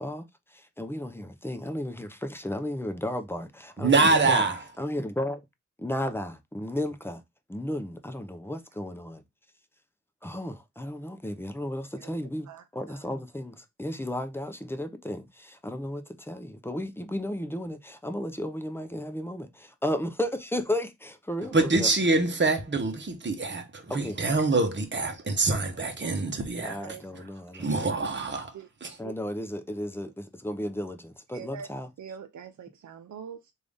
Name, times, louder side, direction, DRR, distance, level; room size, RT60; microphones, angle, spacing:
voice 1, 0.0-4.5 4.8-5.4 5.8-7.2 7.5-9.2 10.2-12.5 12.7-21.9 23.9-24.2 26.6-27.9 29.0-31.9, left 1 dB, 10° left, 0.6 m, -34 dB
voice 2, 3.8-4.6 21.5-26.8 27.1-27.2 27.5-28.5 28.8-29.0, right 3 dB, 40° right, 1.0 m, -25 dB
voice 3, 12.5-13.0 23.9-24.1 26.6-27.0 28.5-28.7 29.0-29.1 31.3-31.7 32.0-33.5, right 7 dB, 70° right, 0.5 m, -44 dB
3.4 x 2.6 x 3.4 m
cardioid pair, 60°, 30 cm